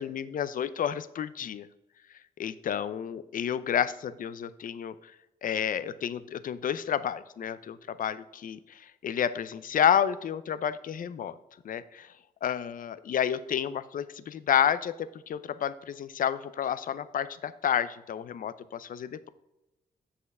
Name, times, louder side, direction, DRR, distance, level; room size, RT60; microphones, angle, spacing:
voice 1, 0.0-1.7 2.4-5.0 5.4-11.3 11.6-12.0 12.4-19.3, left 9 dB, 60° left, 14 dB, 0.5 m, -30 dB
7.4 x 4.3 x 6.7 m, 0.93 s
cardioid pair, 65°, 16 cm